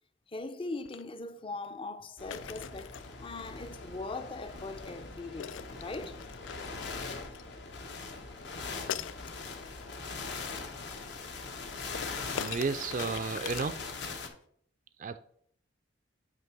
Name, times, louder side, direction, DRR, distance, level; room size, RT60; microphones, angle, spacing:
voice 1, 0.3-6.2 8.4-9.4 10.0-10.4 10.9-11.0, left 3 dB, 30° left, 0.5 m, -41 dB
sound 1, 0.8-1.0 2.3-3.1 5.4-7.5 8.9-9.6 11.9-14.3, left 9 dB, 80° left, 0.3 m, -41 dB
sound 2, 2.2-14.3, left 4 dB, 65° left, 1.0 m, -41 dB
voice 2, 12.3-14.3 15.0-15.2, right 4 dB, 45° right, 0.4 m, -34 dB
9.0 x 3.3 x 5.9 m
head